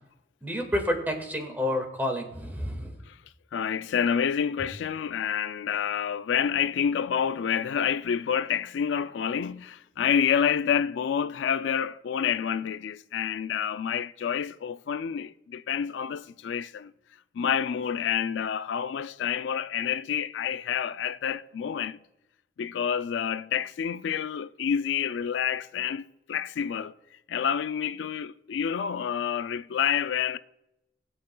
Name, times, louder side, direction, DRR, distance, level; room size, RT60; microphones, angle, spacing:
voice 1, 0.4-3.0, left 1 dB, 10° right, 1.7 m, -29 dB
voice 2, 3.5-16.9 17.3-22.0 22.6-26.9 27.3-30.4, left 8 dB, 80° left, 0.4 m, -28 dB
20.0 x 7.7 x 2.2 m
head